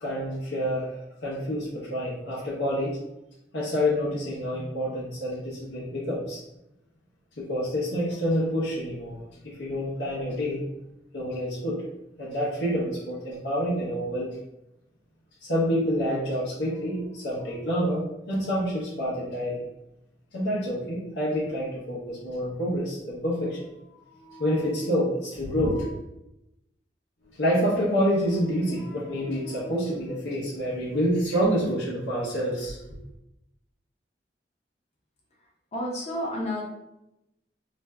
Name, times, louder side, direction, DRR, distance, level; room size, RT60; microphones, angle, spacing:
voice 1, 0.0-3.0 3.5-6.4 7.3-9.2 9.4-10.8 11.1-11.8 12.2-14.4 15.4-19.6 20.3-26.0 27.3-32.8, equal, 70° left, -8 dB, 0.7 m, -28 dB
voice 2, 35.7-36.6, left 1 dB, 40° left, -3 dB, 0.8 m, -30 dB
2.5 x 2.1 x 3.4 m, 0.88 s
head